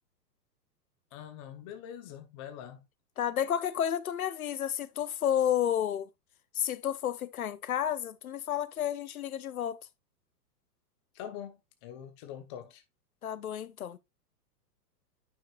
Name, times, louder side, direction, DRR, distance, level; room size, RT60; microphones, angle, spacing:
voice 1, 1.1-2.9 11.1-12.8, left 9 dB, 20° left, 0.5 m, -44 dB
voice 2, 3.2-6.1 6.5-9.8 13.2-14.0, left 10 dB, 60° left, 0.8 m, -31 dB
9.4 x 5.3 x 2.4 m
figure-of-eight pair, 105°, 50 cm